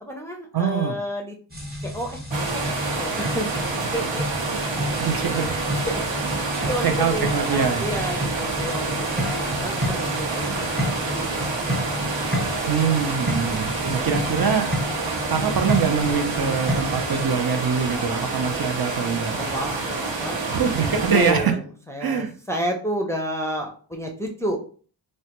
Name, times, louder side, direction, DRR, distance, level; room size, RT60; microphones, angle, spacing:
voice 1, 0.0-1.4 1.8-2.2 2.5-3.5 3.9-4.2 5.9-6.0 6.6-12.7 14.9-15.0 19.0-24.6, equal, 5° left, 1 dB, 0.4 m, -31 dB
voice 2, 0.5-1.0 5.0-5.7 6.8-7.8 12.7-14.7 15.3-19.4 20.5-21.6 22.0-22.3, right 6 dB, 55° right, 5 dB, 0.5 m, -23 dB
sound 1, 1.5-17.2, equal, 20° right, 0.8 m, -30 dB
sound 2, 2.3-21.3, right 3 dB, 90° right, 0.8 m, -28 dB
3.2 x 2.1 x 2.9 m, 0.42 s
wide cardioid pair, 100°, 44 cm